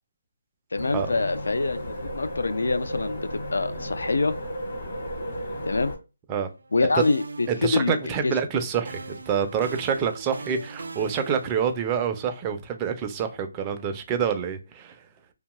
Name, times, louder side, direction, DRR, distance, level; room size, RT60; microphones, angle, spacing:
voice 1, 0.7-4.3 5.7-5.9 6.7-8.3, left 3 dB, 80° left, 0.3 m, -25 dB
sound 1, 0.7-6.0, equal, 50° left, 1.1 m, -34 dB
sound 2, 6.4-6.7 7.0-8.4 8.9-12.0, right 3 dB, 80° right, 0.4 m, -41 dB
voice 2, 7.5-14.9, right 7 dB, 15° right, 0.3 m, -27 dB
2.6 x 2.2 x 3.0 m
hypercardioid pair, 170°, 0 cm